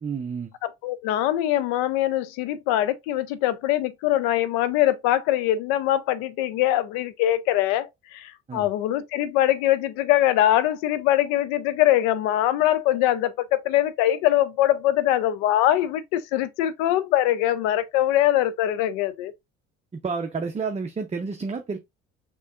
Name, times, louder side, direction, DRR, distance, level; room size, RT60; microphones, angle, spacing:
voice 1, 0.0-0.5 8.5-8.7 19.9-21.8, right 5 dB, 20° right, 0.6 m, -30 dB
voice 2, 0.6-19.3, left 13 dB, 65° left, 0.6 m, -23 dB
6.4 x 3.0 x 2.4 m
hypercardioid pair, 55°, 34 cm